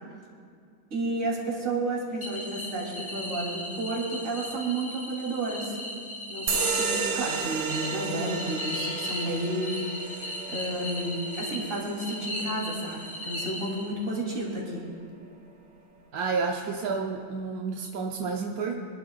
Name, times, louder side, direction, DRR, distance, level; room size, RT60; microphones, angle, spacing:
voice 1, 0.9-5.8 6.3-9.8 10.0-14.8, right 2 dB, 40° right, -4 dB, 3.4 m, -31 dB
sound 1, 2.2-14.2, left 1 dB, 15° left, 1.9 m, -37 dB
sound 2, 6.5-13.5, right 5 dB, 75° right, 1.8 m, -33 dB
voice 2, 16.1-18.8, right 4 dB, 60° right, 1 dB, 1.1 m, -30 dB
25.5 x 12.5 x 2.4 m, 2.3 s
omnidirectional pair, 2.1 m